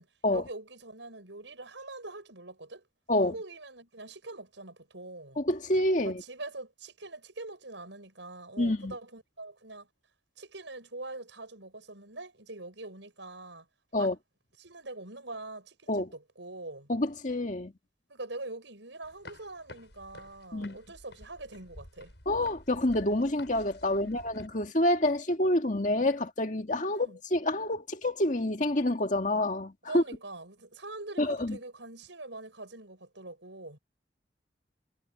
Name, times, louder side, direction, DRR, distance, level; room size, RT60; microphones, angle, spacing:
voice 1, 0.3-2.9 3.2-5.4 5.9-9.9 10.4-13.7 14.0-14.2 14.6-16.9 18.1-22.1 24.0-24.2 26.9-27.2 29.9-33.8, right 2 dB, 85° right, 6.8 m, -44 dB
voice 2, 5.4-6.2 8.6-8.9 13.9-14.1 15.9-16.1 16.9-17.7 20.5-20.8 22.3-30.0 31.2-31.6, left 1 dB, 45° left, 1.9 m, -28 dB
sound 1, 19.0-24.5, left 2 dB, 70° left, 6.5 m, -51 dB
head